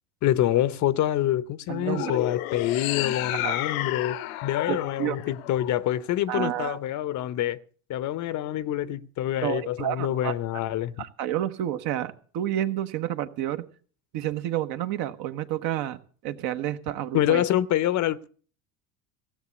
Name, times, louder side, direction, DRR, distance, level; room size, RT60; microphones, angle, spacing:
voice 1, 0.2-7.6 7.9-10.9 17.1-18.3, left 12 dB, 40° left, 0.8 m, -26 dB
voice 2, 1.7-2.2 3.3-3.6 4.7-5.2 6.3-6.8 9.4-10.3 11.0-13.6 14.1-17.4, right 12 dB, 55° right, 1.3 m, -30 dB
sound 1, 1.8-6.2, left 16 dB, 70° left, 1.0 m, -32 dB
16.0 x 7.4 x 8.2 m
hypercardioid pair, 85°, 43 cm